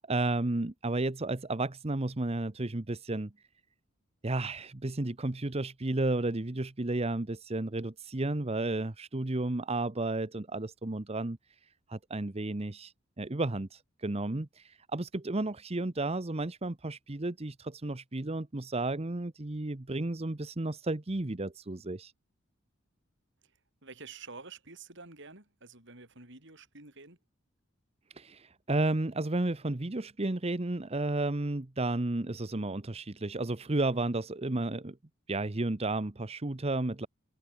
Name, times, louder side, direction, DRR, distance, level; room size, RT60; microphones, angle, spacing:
voice 1, 0.0-3.3 4.2-22.1 28.1-35.0 35.3-37.1, right 2 dB, 30° right, 0.9 m, -32 dB
voice 2, 23.8-27.2, right 4 dB, 65° right, 6.4 m, -49 dB
head